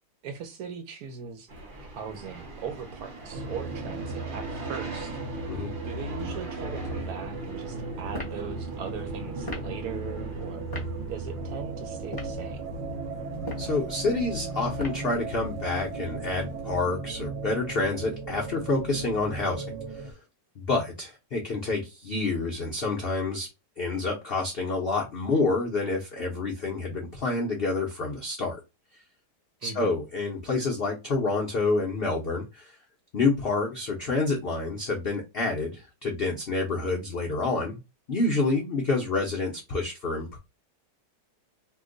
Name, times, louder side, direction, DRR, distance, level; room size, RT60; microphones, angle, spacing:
voice 1, 0.2-1.5 1.9-5.4 5.8-10.7 11.1-12.8 29.6-29.9, right 6 dB, 70° right, 0.9 m, -39 dB
sound 1, 1.5-16.8, right 1 dB, 40° right, 0.8 m, -42 dB
sound 2, 3.3-20.1, right 3 dB, 85° right, 0.6 m, -36 dB
sound 3, 8.1-8.4 9.4-9.7 10.7-10.9 12.0-12.4 13.3-13.7 14.8-15.1, left 1 dB, 20° left, 0.6 m, -37 dB
voice 2, 13.6-20.1 20.6-23.5 23.8-28.6 29.6-32.8 33.1-37.8 38.1-40.4, left 3 dB, 75° left, 0.5 m, -28 dB
2.9 x 2.1 x 3.7 m
omnidirectional pair, 1.9 m